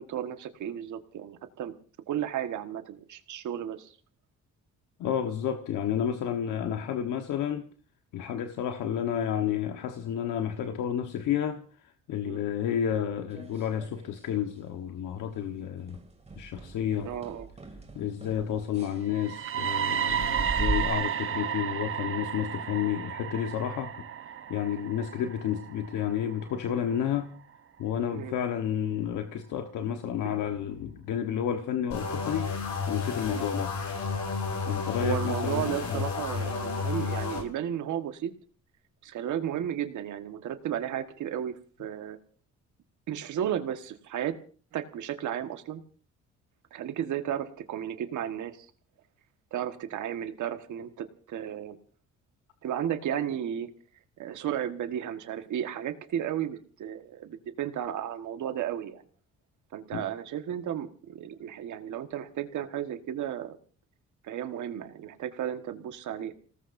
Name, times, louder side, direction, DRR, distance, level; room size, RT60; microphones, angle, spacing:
voice 1, 0.0-1.7 2.1-4.0 12.2-12.4 17.0-17.5 28.1-28.3 29.8-29.9 33.3-33.5 35.0-38.3 39.0-42.2 43.1-44.4 44.7-45.8 46.7-48.7 49.5-51.8 52.6-53.7 54.2-59.0 59.7-63.6 64.2-66.3, right 10 dB, 75° right, 1.5 m, -34 dB
voice 2, 5.0-7.7 8.1-11.6 12.1-16.0 16.4-17.1 17.9-23.9 24.5-27.3 27.8-32.5 32.9-33.7 34.7-36.0 59.9-60.0, left 9 dB, 85° left, 1.3 m, -31 dB
sound 1, 12.9-14.3 14.6-14.9 15.3-15.4 15.9-20.9, right 2 dB, 20° right, 2.6 m, -38 dB
sound 2, 19.1-27.0, right 9 dB, 45° right, 0.9 m, -33 dB
sound 3, 31.9-37.4, left 5 dB, 70° left, 6.8 m, -31 dB
29.5 x 18.5 x 2.6 m
cardioid pair, 90°, 30 cm